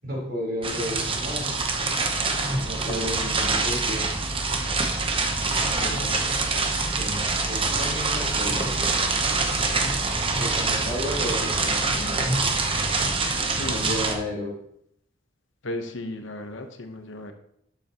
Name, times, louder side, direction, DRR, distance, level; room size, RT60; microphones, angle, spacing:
voice 1, 0.0-1.5 2.6-4.1 7.0-9.5 10.4-12.2 13.6-14.5, equal, 50° right, -3 dB, 3.9 m, -33 dB
sound 1, 0.6-14.2, right 3 dB, 25° right, 0.9 m, -25 dB
voice 2, 2.9-3.2 5.6-6.2 13.6-13.9 15.6-17.3, left 1 dB, 70° left, 6 dB, 1.0 m, -35 dB
12.0 x 7.3 x 3.0 m, 0.72 s
head